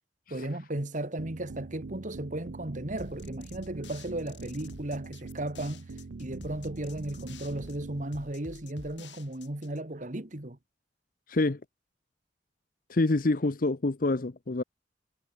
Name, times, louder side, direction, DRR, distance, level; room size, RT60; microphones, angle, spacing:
voice 1, 0.3-5.8 6.2-10.6, right 1 dB, 45° right, 1.8 m, -35 dB
sound 1, 1.2-8.0, right 3 dB, 85° right, 0.6 m, -43 dB
sound 2, 3.0-9.8, left 3 dB, 85° left, 2.8 m, -50 dB
voice 2, 11.3-11.6 12.9-14.6, left 2 dB, 50° left, 0.8 m, -27 dB
head